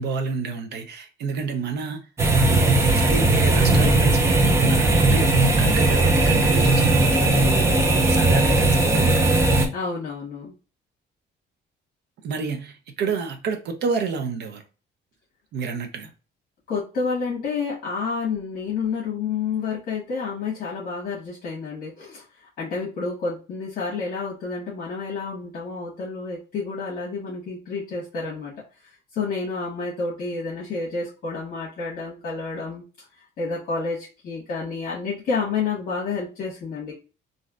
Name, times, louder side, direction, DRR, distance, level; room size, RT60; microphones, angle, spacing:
voice 1, 0.0-2.1 2.5-7.4 8.1-9.5 12.2-14.6 15.5-16.1, right 5 dB, 60° right, 0.7 m, -29 dB
sound 1, 2.2-9.6, right 2 dB, 15° right, 0.5 m, -18 dB
voice 2, 9.7-10.5 16.7-22.2 22.6-28.5 29.1-32.8 33.4-36.9, left 4 dB, 50° left, 1.4 m, -29 dB
3.2 x 2.7 x 2.4 m
cardioid pair, 160°, 19 cm